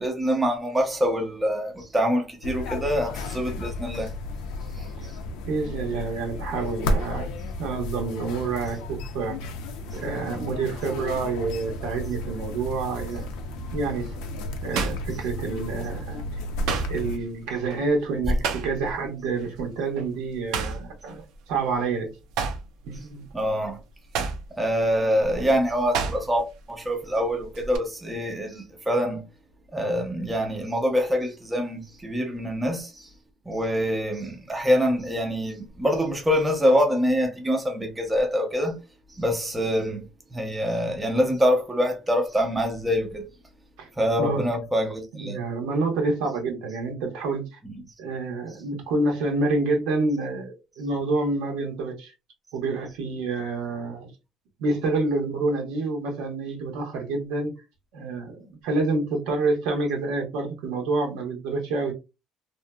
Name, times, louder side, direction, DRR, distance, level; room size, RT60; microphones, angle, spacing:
voice 1, 0.0-4.1 4.8-4.9 23.3-23.8 24.6-29.2 29.7-33.1 33.5-38.8 39.1-43.3 44.0-45.4 47.7-47.8, equal, 10° right, 0.6 m, -25 dB
sound 1, 2.4-17.2, left 2 dB, 85° left, 0.5 m, -33 dB
voice 2, 5.5-7.3 7.6-9.4 9.9-13.3 13.7-14.1 14.6-16.2 16.9-22.1 22.8-23.3 43.8-43.9 44.2-44.5 45.2-47.6 48.0-52.1 52.5-54.1 54.6-57.5 57.9-61.9, right 3 dB, 85° right, 1.1 m, -28 dB
sound 2, 12.5-12.8 13.4-15.9 16.2-19.1 19.4-19.6 20.0-21.9 22.2-26.6 26.8-27.8, right 5 dB, 65° right, 0.6 m, -32 dB
2.8 x 2.6 x 2.2 m
cardioid pair, 175°, 0 cm